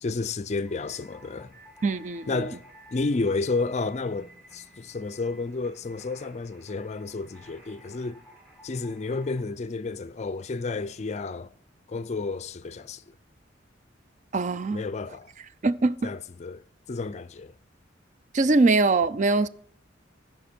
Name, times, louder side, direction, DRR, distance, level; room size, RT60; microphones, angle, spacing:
voice 1, 0.0-1.5 2.3-2.6 2.9-8.2 8.6-11.5 11.9-13.1 14.7-15.3 16.0-16.6 16.9-17.6, left 3 dB, 35° left, 0.4 m, -31 dB
sound 1, 0.6-9.4, equal, ahead, 4.2 m, -53 dB
voice 2, 1.8-2.4 14.3-14.8 15.6-16.1 18.3-19.5, right 3 dB, 40° right, 0.4 m, -22 dB
15.0 x 5.9 x 4.4 m
head